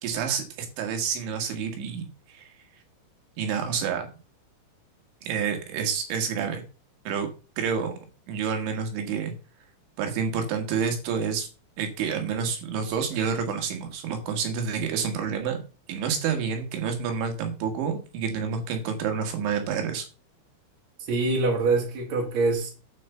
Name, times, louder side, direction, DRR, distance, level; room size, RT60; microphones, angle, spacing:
voice 1, 0.0-2.5 3.4-4.1 5.2-6.6 7.1-7.3 7.6-7.9 8.3-9.3 10.0-11.5 11.8-15.6 15.9-20.1, right 6 dB, 80° right, 4.2 m, -28 dB
voice 2, 21.1-22.7, right 3 dB, 50° right, 2.5 m, -24 dB
9.5 x 5.3 x 6.8 m
omnidirectional pair, 5.4 m